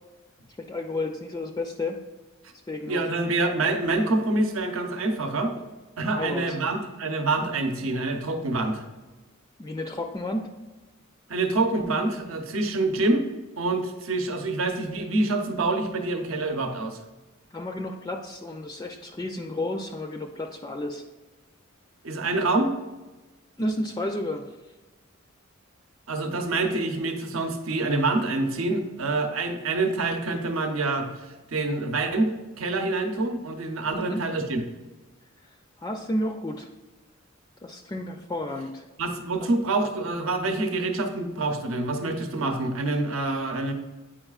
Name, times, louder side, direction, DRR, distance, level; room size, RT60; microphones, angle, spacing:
voice 1, 0.6-2.0 2.7-3.4 6.1-6.6 9.6-10.5 17.5-21.0 23.6-24.5 33.9-34.2 35.8-36.7 37.6-38.8 39.4-39.5, left 1 dB, 20° left, 4 dB, 0.4 m, -32 dB
voice 2, 2.8-5.5 6.0-8.8 11.3-13.3 13.6-17.0 22.0-22.7 26.1-31.1 31.5-32.3 32.6-34.6 39.0-43.7, right 2 dB, 70° right, 5 dB, 0.8 m, -26 dB
8.8 x 4.8 x 2.4 m, 1.1 s
head